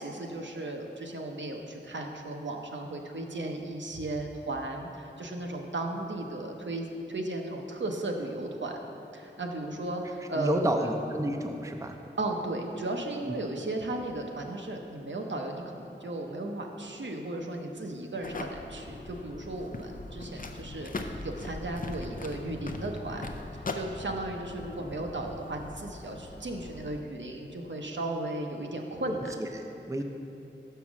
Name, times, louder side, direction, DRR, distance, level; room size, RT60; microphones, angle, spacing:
voice 1, 0.0-8.7 9.1-10.9 12.2-23.2 23.7-29.3, right 2 dB, 70° right, 2 dB, 0.7 m, -35 dB
voice 2, 10.3-12.0 13.2-13.4 29.9-30.0, right 1 dB, 15° right, 4 dB, 0.5 m, -29 dB
sound 1, 18.2-27.0, left 2 dB, 45° left, 0.5 m, -40 dB
5.9 x 5.6 x 6.1 m, 2.9 s
wide cardioid pair, 60°, 20 cm